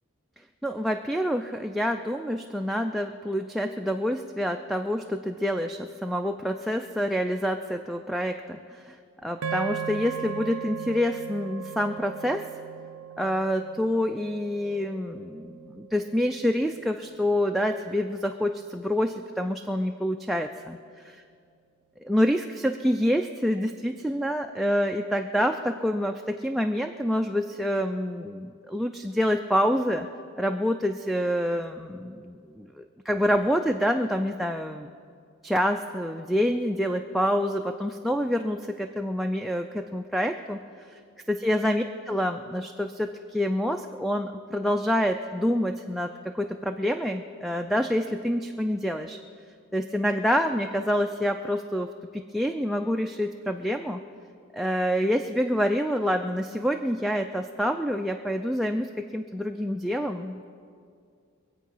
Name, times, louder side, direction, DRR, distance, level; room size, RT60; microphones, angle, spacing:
voice 1, 0.6-9.0 9.2-12.5 13.2-21.2 22.1-30.1 30.4-34.9 35.4-40.6 40.9-41.0 41.3-49.2 49.7-54.0 54.5-60.5, equal, ahead, 3 dB, 0.4 m, -27 dB
sound 1, 9.4-17.8, right 7 dB, 85° right, 0.5 m, -38 dB
24.0 x 8.2 x 5.6 m, 2.3 s
head